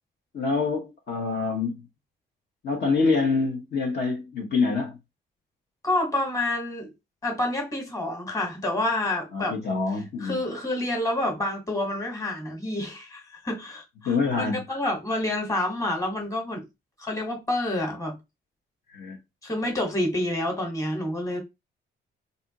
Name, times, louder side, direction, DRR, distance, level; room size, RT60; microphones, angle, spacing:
voice 1, 0.3-1.8 2.6-5.0 9.3-10.4 14.0-14.6 18.9-19.2, left 4 dB, 55° left, 1.0 m, -26 dB
voice 2, 5.8-6.9 7.2-9.6 10.2-16.6 17.0-18.2 19.4-21.4, left 1 dB, 15° left, 1.4 m, -28 dB
3.3 x 2.7 x 2.9 m
cardioid pair, 90°, 20 cm